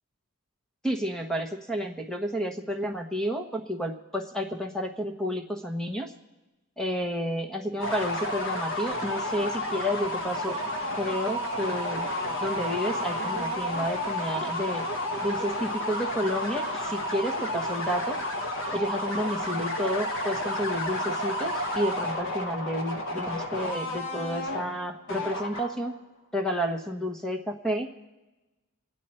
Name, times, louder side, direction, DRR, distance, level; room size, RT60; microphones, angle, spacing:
voice 1, 0.8-6.1 6.8-10.6 11.0-12.1 12.4-14.8 15.2-18.2 18.7-25.9 26.3-27.9, equal, 5° left, 3 dB, 1.2 m, -31 dB
sound 1, 7.8-25.9, left 1 dB, 60° left, 1.4 m, -31 dB
26.5 x 9.3 x 4.4 m, 1.1 s
head